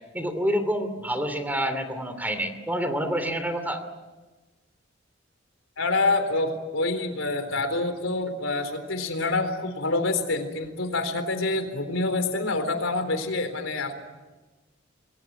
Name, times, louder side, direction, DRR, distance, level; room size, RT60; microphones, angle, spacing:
voice 1, 0.1-3.8, equal, 10° right, 9 dB, 2.8 m, -27 dB
voice 2, 5.8-13.9, left 2 dB, 85° left, 7 dB, 4.0 m, -27 dB
28.0 x 21.0 x 9.5 m, 1.2 s
head